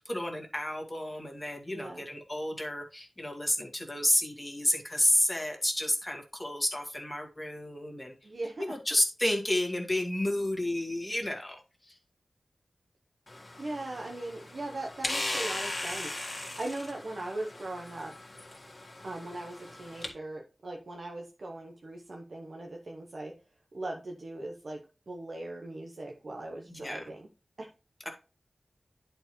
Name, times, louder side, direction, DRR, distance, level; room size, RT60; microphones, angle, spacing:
voice 1, 0.0-8.1 8.6-12.0 26.7-27.0, left 1 dB, 20° left, 2 dB, 1.8 m, -31 dB
voice 2, 1.7-2.0 8.2-8.7 13.6-18.1 19.0-23.3 23.7-24.8 25.1-27.3 27.6-27.7, right 2 dB, 60° right, 0 dB, 0.9 m, -39 dB
sound 1, 13.3-20.1, left 2 dB, 35° left, 1.8 m, -38 dB
10.5 x 4.5 x 3.1 m, 0.33 s
wide cardioid pair, 85°, 0 cm